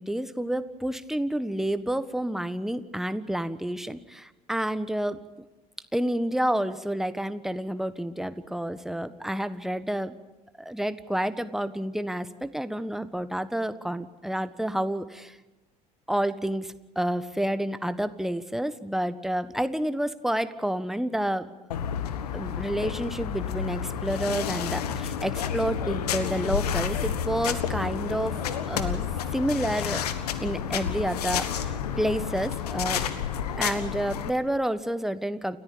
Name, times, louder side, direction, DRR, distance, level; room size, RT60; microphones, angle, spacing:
voice 1, 0.0-5.2 5.9-10.2 10.6-15.4 16.1-21.5 22.3-28.4 28.7-29.0 29.3-30.0 30.4-33.0 33.6-35.6, right 1 dB, ahead, 12 dB, 1.4 m, -29 dB
sound 1, 21.7-34.3, left 8 dB, 75° left, 1.5 m, -30 dB
29.5 x 13.5 x 8.7 m, 1.1 s
figure-of-eight pair, 60°, 20 cm